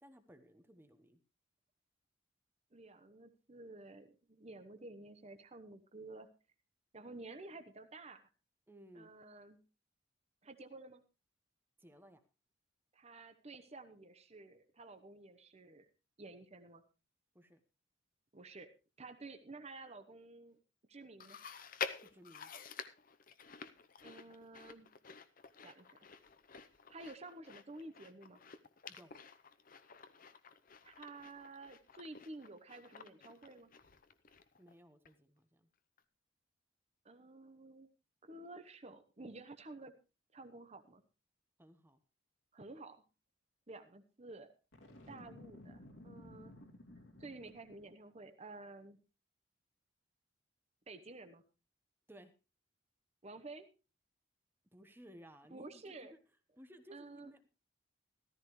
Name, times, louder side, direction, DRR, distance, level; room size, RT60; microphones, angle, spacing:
voice 1, 0.0-1.2 8.7-9.1 11.8-12.2 17.3-17.6 22.1-22.5 28.9-29.1 34.6-35.7 41.6-42.0 52.1-52.3 54.7-56.0 56.6-57.5, equal, 10° right, 9 dB, 1.1 m, -58 dB
voice 2, 2.7-6.3 6.9-8.3 8.9-9.6 10.4-11.0 12.9-15.9 16.2-16.8 18.3-18.7 19.0-20.6 20.9-21.4 24.0-24.9 25.6-26.0 26.9-28.4 30.8-33.7 37.0-37.9 38.2-39.9 40.3-41.0 42.5-43.0 43.7-44.5 45.1-46.6 47.2-49.0 50.9-51.4 53.2-53.7 55.5-56.1 56.9-57.3, right 2 dB, 35° right, 9 dB, 1.0 m, -52 dB
Chewing mastication, 21.2-34.7 35.1-35.2 36.0-36.1, left 6 dB, 45° left, 0.8 m, -49 dB
Boom, 44.7-47.9, left 1 dB, 85° left, 2.7 m, -55 dB
14.5 x 14.0 x 3.2 m, 0.31 s
head